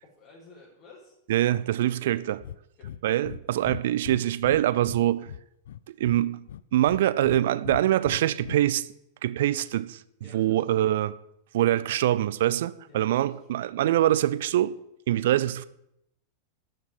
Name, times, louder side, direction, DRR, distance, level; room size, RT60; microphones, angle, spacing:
voice 1, 0.0-1.2 2.8-2.9 10.2-10.8 12.8-13.4, left 3 dB, 35° left, 5.5 m, -52 dB
voice 2, 1.3-2.4 3.0-5.3 5.9-8.9 9.2-10.0 10.3-11.2 11.5-14.8 15.1-15.6, right 13 dB, 55° right, 0.7 m, -24 dB
Breathing, 2.4-2.6 2.8-3.0 3.2-3.4 3.6-5.0 5.3-6.2 6.5-7.4 7.6-8.6, left 10 dB, 60° left, 0.5 m, -39 dB
12.5 x 6.7 x 9.5 m
figure-of-eight pair, 90°, 0 cm